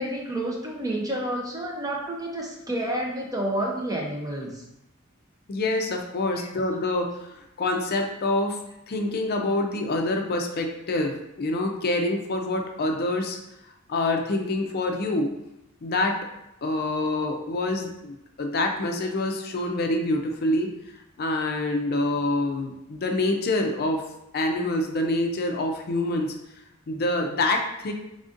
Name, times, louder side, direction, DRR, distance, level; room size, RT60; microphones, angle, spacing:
voice 1, 0.0-4.6, right 1 dB, 15° right, -1 dB, 0.6 m, -29 dB
voice 2, 5.5-8.6 8.9-13.4 13.9-15.3 15.8-16.2 16.6-20.7 21.2-24.0 24.3-26.4 26.9-27.9, left 2 dB, 50° left, 3 dB, 0.4 m, -26 dB
3.8 x 3.5 x 2.5 m, 0.86 s
head